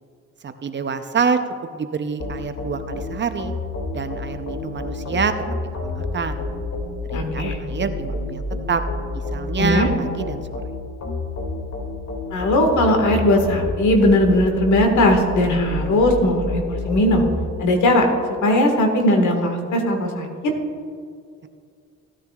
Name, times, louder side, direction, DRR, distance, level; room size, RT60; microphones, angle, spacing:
voice 1, 0.4-1.4 1.7-3.5 3.9-5.3 5.6-6.4 7.1-8.8 9.3-10.6, right 5 dB, 40° right, 8 dB, 0.7 m, -26 dB
sound 1, 2.2-17.4, left 2 dB, 60° left, 2.4 m, -29 dB
voice 2, 7.1-7.6 9.6-9.9 12.3-17.2 17.6-18.1 18.4-20.5, left 1 dB, 75° left, 3 dB, 1.8 m, -18 dB
16.0 x 10.0 x 2.4 m, 2.3 s
cardioid pair, 90°, 30 cm